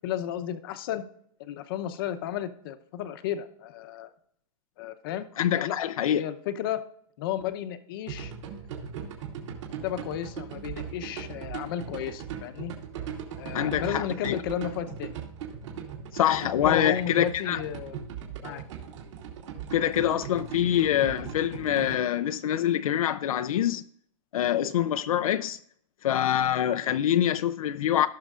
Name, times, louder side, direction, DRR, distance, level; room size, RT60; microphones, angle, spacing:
voice 1, 0.0-1.0 1.4-4.1 4.8-5.3 5.6-6.8 7.2-8.3 9.8-12.7 13.4-15.1 16.3-18.0 18.4-18.6, left 10 dB, 40° left, 0.8 m, -33 dB
voice 2, 5.4-6.2 13.5-14.4 16.1-17.6 19.7-23.8 24.3-25.6 26.0-28.1, left 11 dB, 80° left, 0.5 m, -25 dB
sound 1, 8.1-21.9, right 7 dB, 60° right, 2.6 m, -39 dB
17.5 x 6.1 x 2.4 m
hypercardioid pair, 160°, 18 cm